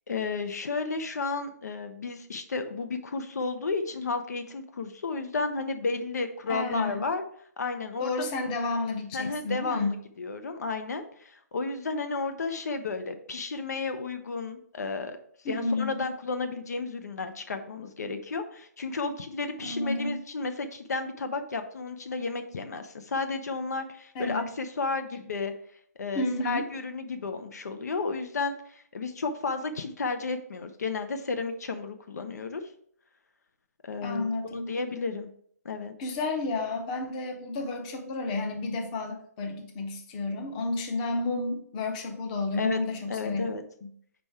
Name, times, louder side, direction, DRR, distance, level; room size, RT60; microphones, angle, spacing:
voice 1, 0.1-7.2 7.6-8.1 9.1-15.2 15.5-25.5 26.0-32.6 33.8-35.3 35.6-35.9 42.6-42.8 43.1-43.6, left 4 dB, 70° left, 8 dB, 0.7 m, -32 dB
voice 2, 6.5-7.0 8.0-9.9 15.4-16.0 19.6-20.2 24.1-24.5 26.1-26.7 34.0-34.8 36.0-43.5 43.8-43.9, left 2 dB, 25° left, 4 dB, 0.9 m, -31 dB
5.2 x 4.3 x 4.7 m, 0.63 s
hypercardioid pair, 150°, 9 cm